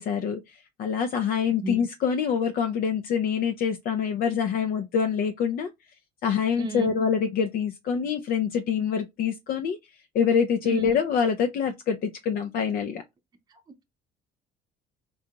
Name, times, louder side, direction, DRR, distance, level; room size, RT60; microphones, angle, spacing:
voice 1, 0.0-5.7 6.2-9.8 10.1-13.0, left 7 dB, 60° left, 0.5 m, -25 dB
voice 2, 6.6-6.9 10.6-11.0 13.5-13.8, right 3 dB, 25° right, 0.6 m, -33 dB
3.8 x 2.3 x 2.8 m
cardioid pair, 110°, 17 cm